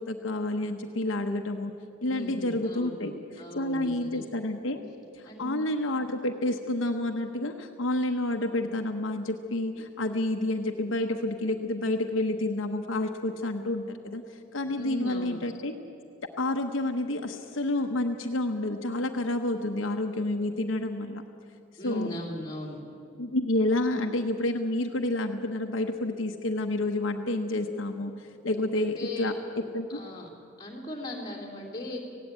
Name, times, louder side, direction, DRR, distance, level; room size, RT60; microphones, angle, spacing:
voice 1, 0.0-1.7 2.0-3.1 3.5-4.8 5.1-14.2 14.5-15.8 16.4-21.2 21.8-22.1 23.2-28.1 28.4-29.3 29.7-30.0, left 1 dB, 70° left, 4 dB, 1.0 m, -29 dB
voice 2, 2.1-3.1 3.4-4.2 5.2-5.6 14.8-15.4 21.8-22.8 28.7-29.3 29.9-30.3 30.6-32.0, left 1 dB, 20° left, -1 dB, 2.9 m, -38 dB
18.0 x 16.5 x 8.9 m, 2.6 s
head